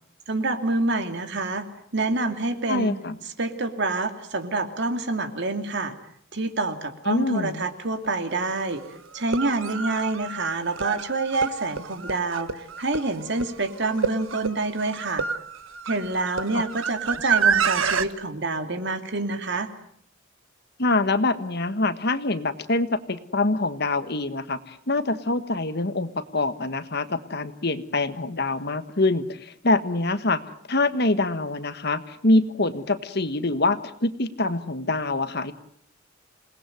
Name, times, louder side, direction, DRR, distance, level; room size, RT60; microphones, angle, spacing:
voice 1, 0.3-1.7 1.9-2.9 3.4-5.9 6.3-8.8 9.1-15.3 15.9-19.7, right 2 dB, 55° right, 7 dB, 2.8 m, -27 dB
voice 2, 2.7-3.2 7.0-7.6 16.5-16.6 17.1-17.2 20.8-30.4 30.7-35.5, left 2 dB, 50° left, 11 dB, 1.5 m, -25 dB
sound 1, 8.0-8.1 9.2-18.1, right 6 dB, 75° right, 1.4 m, -28 dB
28.0 x 19.5 x 9.2 m, 0.67 s
head